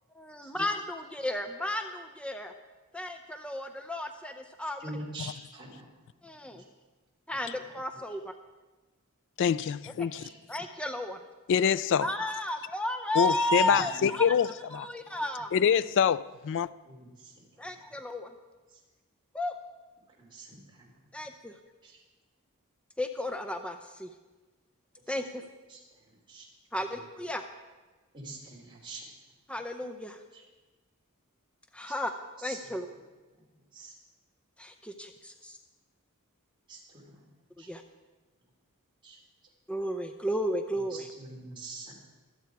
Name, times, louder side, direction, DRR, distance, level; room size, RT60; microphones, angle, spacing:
voice 1, 0.4-2.5 2.9-4.9 6.2-6.6 7.3-8.3 10.0-10.1 10.5-11.2 12.0-14.4 14.7-15.5 17.6-18.3 19.3-19.5 21.1-21.5 23.0-24.1 25.1-25.3 26.7-27.4 29.5-30.2 31.7-32.1 32.4-32.9 34.6-35.6 37.6-37.8 39.7-41.1, left 1 dB, 5° left, 0.6 m, -33 dB
voice 2, 4.8-5.9 9.5-9.6 10.2-10.3 16.9-17.1 20.3-20.5 21.8-21.9 25.7-25.8 26.3-26.4 28.1-29.0 32.5-32.6 33.7-33.9 36.7-36.8 37.6-37.7 39.0-39.2 40.9-41.9, right 2 dB, 20° right, 3.3 m, -43 dB
voice 3, 9.4-10.2 11.5-12.1 13.2-14.5 14.7-14.9 15.5-16.7, left 7 dB, 55° left, 0.3 m, -25 dB
24.0 x 8.2 x 4.7 m
head